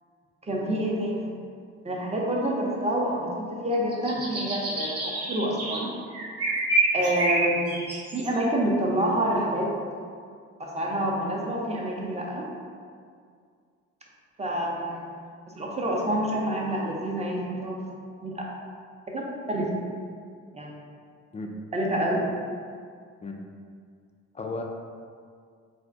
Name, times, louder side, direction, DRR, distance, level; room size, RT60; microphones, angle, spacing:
voice 1, 0.4-1.3 1.8-5.9 6.9-7.8 8.1-9.7 10.6-12.4 14.4-15.0 15.5-17.8 18.2-18.4 19.1-19.7 20.5-20.7 21.7-22.2, right 1 dB, 20° right, -2 dB, 0.7 m, -27 dB
sound 1, 3.7-5.8 6.1-8.5, right 2 dB, 45° right, 0.9 m, -27 dB
voice 2, 21.3-21.5 21.9-22.1 23.2-23.4 24.3-24.6, left 3 dB, 20° left, 2 dB, 0.3 m, -34 dB
2.5 x 2.1 x 3.7 m, 2.2 s
hypercardioid pair, 55°, 34 cm